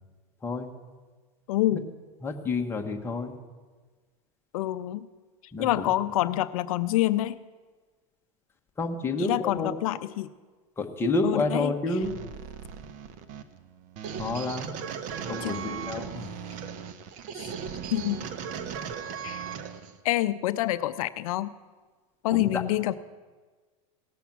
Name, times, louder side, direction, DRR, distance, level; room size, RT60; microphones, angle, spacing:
voice 1, 1.5-1.9 4.5-5.1 5.6-7.4 9.2-10.3 11.2-11.7 15.4-15.6 17.3-17.5 17.9-18.3 19.2-19.4 20.0-21.5 22.2-22.9, left 15 dB, 80° left, 14 dB, 0.5 m, -27 dB
voice 2, 2.2-3.3 5.5-5.9 8.8-9.7 10.8-12.1 14.2-14.8 15.3-16.3 22.3-22.6, left 3 dB, 15° left, 3 dB, 1.2 m, -29 dB
sound 1, 12.0-20.0, right 7 dB, 45° right, 1.0 m, -37 dB
18.0 x 7.0 x 6.0 m, 1.4 s
supercardioid pair, 135°, 18 cm